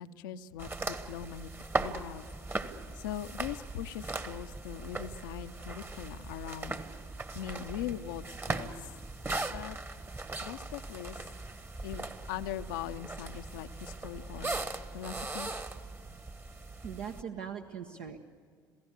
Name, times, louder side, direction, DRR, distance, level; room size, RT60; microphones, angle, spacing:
voice 1, 0.0-1.5 1.8-2.3 3.0-6.8 7.3-8.9 9.5-9.8 10.4-11.2 11.8-14.6 14.9-15.5, left 10 dB, 70° left, 10 dB, 0.7 m, -41 dB
sound 1, 0.6-17.2, right 2 dB, 20° right, 1.4 m, -39 dB
voice 2, 16.8-18.2, right 7 dB, 60° right, 4 dB, 1.1 m, -41 dB
27.5 x 17.0 x 8.3 m, 2.1 s
figure-of-eight pair, 60°, 11 cm